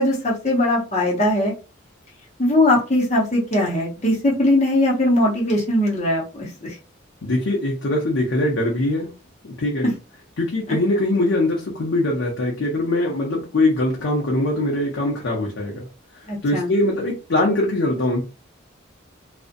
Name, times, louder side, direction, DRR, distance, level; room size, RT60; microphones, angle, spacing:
voice 1, 0.0-1.5 2.4-6.8 9.8-9.9 16.3-16.7, left 1 dB, 35° left, -4 dB, 0.6 m, -20 dB
voice 2, 7.2-9.1 9.4-9.9 10.4-15.9 16.4-18.2, left 1 dB, 75° left, -1 dB, 0.6 m, -22 dB
2.5 x 2.1 x 2.5 m, 0.32 s
head